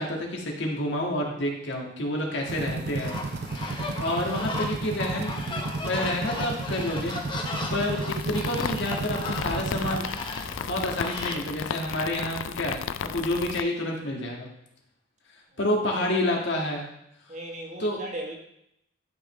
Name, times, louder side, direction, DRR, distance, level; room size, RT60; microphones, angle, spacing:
voice 1, 0.0-3.1 4.0-10.1 10.6-12.8 13.1-14.5 15.6-16.9 17.8-18.0, left 1 dB, 65° left, 0 dB, 1.7 m, -29 dB
sound 1, 2.5-10.0, right 3 dB, 55° right, 0.5 m, -33 dB
sound 2, 3.0-11.4, left 2 dB, 25° left, 0.9 m, -36 dB
sound 3, 8.1-13.6, left 8 dB, 85° left, 0.4 m, -34 dB
voice 2, 15.5-16.2 17.3-18.3, right 1 dB, 40° right, 0 dB, 1.4 m, -40 dB
11.5 x 5.6 x 3.2 m, 0.79 s
head